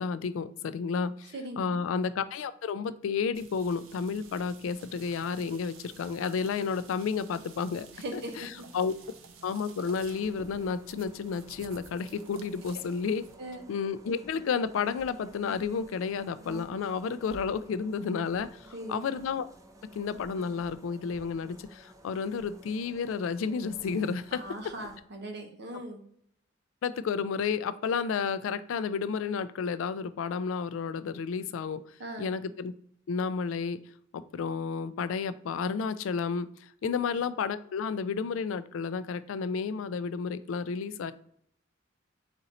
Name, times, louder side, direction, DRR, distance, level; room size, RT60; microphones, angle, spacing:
voice 1, 0.0-8.5 8.7-9.0 9.4-13.2 13.7-19.5 19.9-24.7 26.8-31.8 32.2-32.7 33.1-33.8 34.1-41.1, left 5 dB, 80° left, 14 dB, 0.3 m, -31 dB
voice 2, 1.3-1.8 7.9-8.6 13.4-13.6 18.7-19.0 24.3-26.0 32.0-32.3 36.8-36.9, right 1 dB, 55° right, 3 dB, 0.8 m, -40 dB
sound 1, 3.3-13.3, right 5 dB, 90° right, 0.6 m, -52 dB
sound 2, 10.1-25.0, right 1 dB, 15° right, 0.4 m, -52 dB
4.0 x 2.5 x 4.1 m, 0.68 s
head